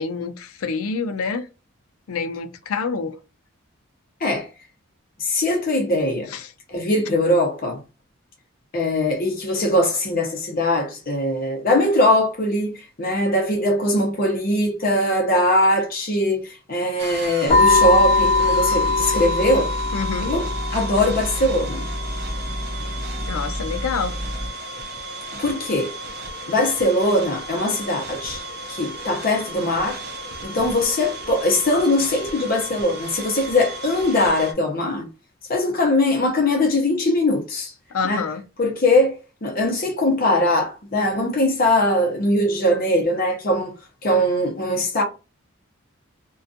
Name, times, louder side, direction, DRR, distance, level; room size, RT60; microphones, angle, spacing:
voice 1, 0.0-1.5 2.1-3.2 6.3-6.5 19.9-20.3 23.3-24.1 37.9-38.4, left 5 dB, 90° left, 0.4 m, -27 dB
voice 2, 5.2-6.3 6.7-7.8 8.7-19.7 20.3-20.5 20.7-21.8 25.3-25.9 26.5-28.4 28.7-30.0 30.4-35.1 35.5-37.7 38.0-38.2 38.6-43.7 44.0-45.0, left 1 dB, 45° left, 0.6 m, -21 dB
sound 1, 17.0-34.5, right 1 dB, 50° right, 0.4 m, -35 dB
sound 2, 17.5-24.5, left 3 dB, 25° left, 1.0 m, -22 dB
2.5 x 2.3 x 2.6 m
head